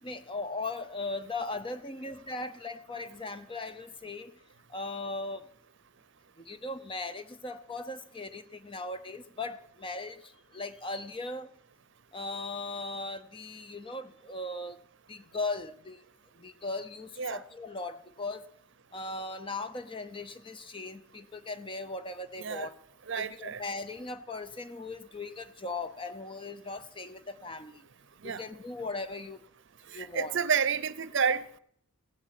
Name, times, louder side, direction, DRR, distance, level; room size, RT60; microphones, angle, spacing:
voice 1, 0.0-4.3 4.7-5.4 6.5-11.5 12.1-14.8 15.1-16.0 16.4-18.5 18.9-22.7 23.2-27.8 28.2-29.4 29.9-30.4, left 2 dB, 25° left, 0.6 m, -38 dB
voice 2, 23.1-23.6 28.2-28.4 29.9-31.6, right 6 dB, 55° right, 0.7 m, -30 dB
16.5 x 8.1 x 8.2 m
head